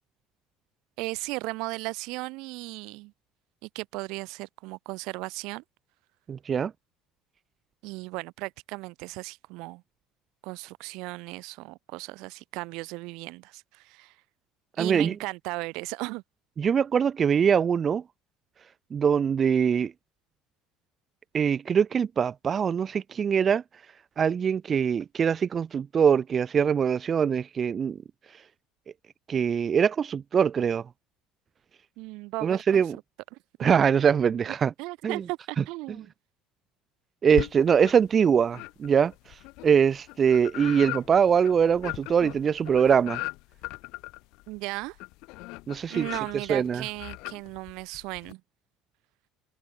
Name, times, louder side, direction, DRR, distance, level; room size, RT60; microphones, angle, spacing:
voice 1, 1.0-3.1 3.6-5.6 7.8-9.8 10.4-14.1 14.8-16.2 32.0-32.8 33.3-33.7 34.4-36.1 44.5-45.0 45.9-48.4, right 24 dB, 70° right, 1.7 m, -36 dB
voice 2, 6.3-6.7 14.8-15.1 16.6-18.0 18.9-19.9 21.3-23.6 24.2-28.0 28.3-28.4 29.3-30.9 32.4-33.0 33.6-34.7 35.0-35.2 35.6-36.0 37.2-43.2 45.7-46.1 46.5-46.8, right 7 dB, 30° right, 0.4 m, -23 dB
sound 1, 37.3-38.1 38.5-48.3, left 23 dB, 70° left, 5.3 m, -39 dB
cardioid pair, 130°, 0 cm